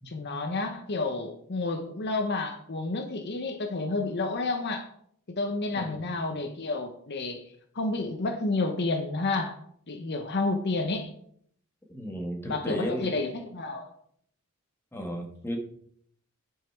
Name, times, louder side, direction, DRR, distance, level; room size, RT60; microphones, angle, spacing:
voice 1, 0.1-4.9 5.3-7.4 7.7-9.6 9.9-11.1 12.5-13.9, left 3 dB, 50° left, 6 dB, 0.9 m, -30 dB
voice 2, 5.7-6.1 11.9-13.1 14.9-15.6, equal, 10° left, 1 dB, 1.5 m, -34 dB
10.0 x 5.6 x 4.6 m, 0.66 s
head